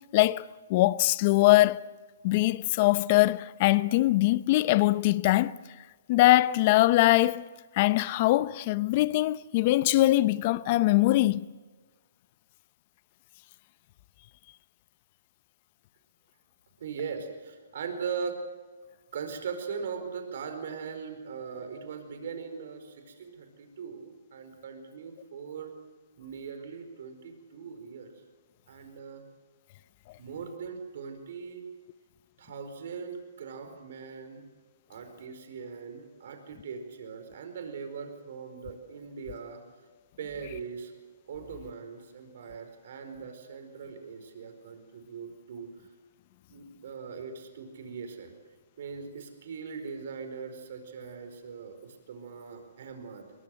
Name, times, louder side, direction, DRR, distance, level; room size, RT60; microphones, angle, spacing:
voice 1, 0.1-1.9 2.2-5.6 6.1-7.5 7.7-11.5, left 17 dB, 40° left, 0.7 m, -22 dB
voice 2, 16.8-18.4 19.1-25.7 26.2-28.1 28.7-29.2 30.2-31.6 32.4-34.4 34.9-39.6 40.2-40.9 41.3-45.7 46.5-48.3 48.8-53.3, right 6 dB, 60° right, 4.7 m, -40 dB
22.5 x 21.0 x 7.9 m
hypercardioid pair, 145°, 0 cm